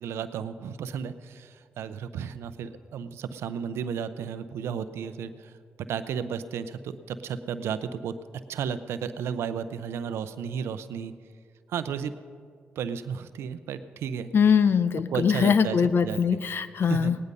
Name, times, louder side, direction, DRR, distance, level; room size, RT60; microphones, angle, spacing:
voice 1, 0.0-5.5 5.8-8.1 8.5-11.1 11.7-12.1 12.8-14.3 15.1-15.8 16.0-16.4 16.8-17.1, right 7 dB, 85° right, 12 dB, 0.6 m, -33 dB
voice 2, 14.3-17.2, left 6 dB, 60° left, 13 dB, 0.7 m, -22 dB
18.0 x 9.9 x 5.3 m, 2.1 s
cardioid pair, 65°, 4 cm